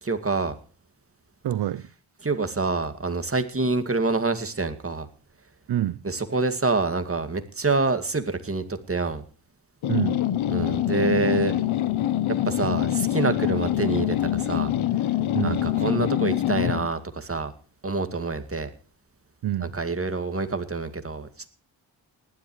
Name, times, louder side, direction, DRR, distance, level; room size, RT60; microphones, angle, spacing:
voice 1, 0.0-0.5 2.2-5.1 6.0-9.2 10.5-11.5 12.5-14.7 15.4-17.5 17.8-18.7 19.6-21.5, right 3 dB, 30° right, 2.3 m, -26 dB
voice 2, 1.4-1.9 5.7-6.0 9.9-10.2 15.3-15.7 19.4-19.8, right 12 dB, 55° right, 0.6 m, -27 dB
sound 1, 9.8-16.9, left 12 dB, 85° left, 1.0 m, -25 dB
19.5 x 12.0 x 3.2 m
cardioid pair, 60°, 47 cm